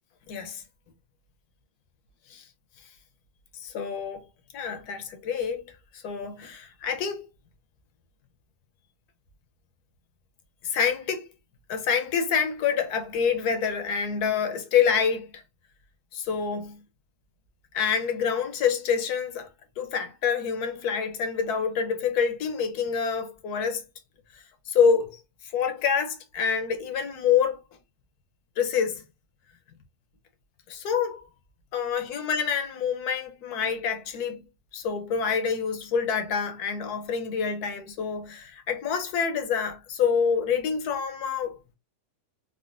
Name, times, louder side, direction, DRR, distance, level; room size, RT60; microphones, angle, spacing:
voice 1, 0.3-0.6 2.3-2.4 3.6-4.2 4.5-5.6 5.9-7.3 10.6-11.3 11.7-15.4 16.1-16.8 17.7-19.5 19.8-23.8 24.7-25.2 25.5-27.6 28.6-29.0 30.7-31.2 31.7-34.4 34.7-41.6, left 6 dB, 75° left, 1.1 m, -27 dB
3.8 x 2.1 x 2.4 m
omnidirectional pair, 1.7 m